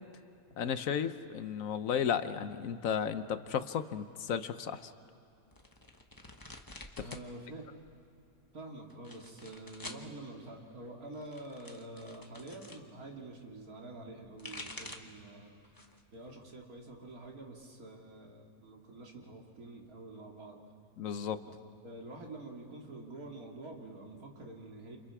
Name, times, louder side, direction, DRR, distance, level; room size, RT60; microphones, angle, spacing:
voice 1, 0.6-4.9 21.0-21.4, left 8 dB, 70° left, 11 dB, 1.2 m, -34 dB
sound 1, 5.5-7.3 7.6-8.2 8.9-10.1 11.1-12.8 14.1-15.2 15.6-16.1 16.5-17.4, left 2 dB, 15° left, 1.1 m, -49 dB
voice 2, 7.0-7.6 8.5-15.5 16.1-20.6 21.4-21.5 21.8-25.0, right 2 dB, 80° right, 0 dB, 3.0 m, -47 dB
29.0 x 28.5 x 4.9 m, 2.6 s
omnidirectional pair, 1.5 m